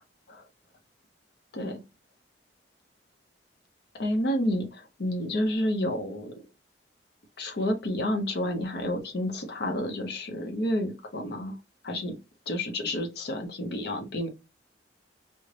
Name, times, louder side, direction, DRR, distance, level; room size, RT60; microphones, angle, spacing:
voice 1, 4.0-6.3 7.4-11.6 11.8-12.2 12.5-14.3, left 1 dB, 60° left, 0.7 m, -30 dB
3.2 x 2.1 x 3.7 m
head